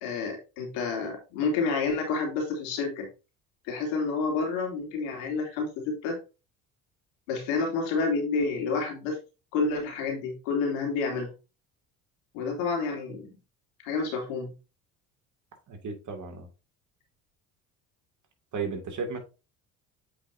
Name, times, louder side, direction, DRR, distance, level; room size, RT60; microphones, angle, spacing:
voice 1, 0.0-3.1 3.6-6.2 7.3-9.2 9.5-11.3 12.3-13.3 13.8-14.5, left 4 dB, 80° left, 2.7 m, -29 dB
voice 2, 15.7-16.5 18.5-19.2, right 5 dB, 50° right, 2.5 m, -34 dB
8.2 x 5.4 x 2.7 m
hypercardioid pair, 65°, 40 cm